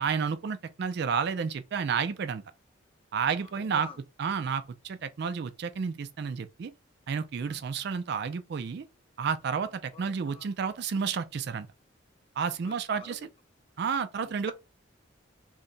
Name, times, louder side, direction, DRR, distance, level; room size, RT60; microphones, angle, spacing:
voice 1, 0.0-2.4 3.1-3.9 4.2-6.7 7.1-8.9 9.2-11.7 12.4-13.2 13.8-14.5, right 6 dB, 55° right, 0.3 m, -31 dB
voice 2, 3.6-4.0 7.4-7.6 7.9-8.0 9.9-10.5 12.6-13.3 14.2-14.5, left 5 dB, 25° left, 0.4 m, -47 dB
2.7 x 2.1 x 3.8 m
head